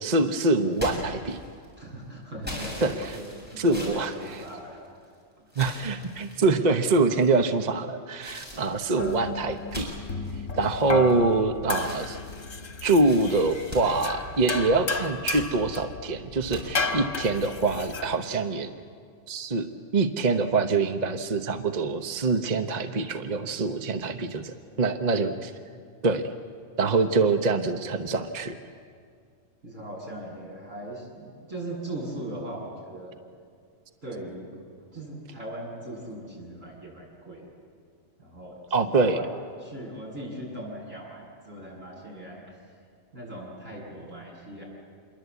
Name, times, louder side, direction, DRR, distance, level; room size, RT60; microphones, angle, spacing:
voice 1, 0.0-1.4 2.8-3.2 3.6-4.4 5.6-9.9 10.6-12.2 12.8-18.7 19.3-19.7 19.9-25.5 26.0-26.3 26.8-28.6 38.7-39.2, right 3 dB, 35° right, 7 dB, 1.0 m, -25 dB
sound 1, 0.7-1.7 2.4-5.1 5.5-6.5 7.1-7.6 8.2-11.4 11.7-14.7 15.1-15.5 16.5-16.6, left 1 dB, 5° right, 7.2 m, -41 dB
voice 2, 1.8-3.3 3.6-4.8 24.6-25.0 29.6-33.1 34.0-34.5 34.9-37.4 38.2-38.5 38.8-39.3 39.6-42.4 43.1-44.6, right 1 dB, 80° right, -3 dB, 8.6 m, -39 dB
sound 2, 9.0-18.1, left 4 dB, 75° left, 1.9 m, -34 dB
27.5 x 22.5 x 8.3 m, 2.2 s
omnidirectional pair, 1.3 m